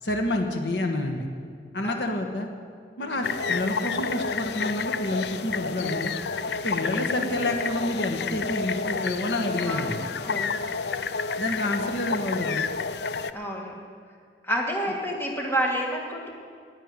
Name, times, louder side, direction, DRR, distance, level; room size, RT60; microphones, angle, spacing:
voice 1, 0.0-1.3 1.7-2.5 3.0-6.1 6.6-10.0 11.4-12.7, left 1 dB, 85° left, 3 dB, 1.4 m, -28 dB
sound 1, 3.2-13.3, left 5 dB, 65° left, 0.5 m, -30 dB
voice 2, 9.6-10.6 13.3-13.7 14.4-16.3, equal, 15° left, -1 dB, 1.8 m, -29 dB
10.0 x 9.9 x 9.7 m, 2.1 s
head